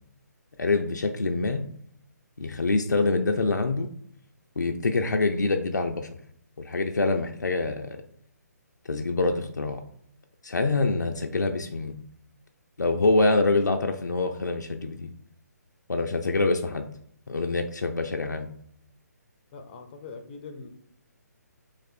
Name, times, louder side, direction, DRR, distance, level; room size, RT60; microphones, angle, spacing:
voice 1, 0.6-1.6 2.4-3.9 4.6-6.1 6.6-8.0 8.9-9.8 10.4-12.0 12.8-15.1 15.9-16.9 17.3-18.5, left 3 dB, 85° left, 4 dB, 0.4 m, -25 dB
voice 2, 19.5-20.7, left 4 dB, 30° left, 7 dB, 0.5 m, -42 dB
3.3 x 2.4 x 4.1 m, 0.67 s
figure-of-eight pair, 140°, 9 cm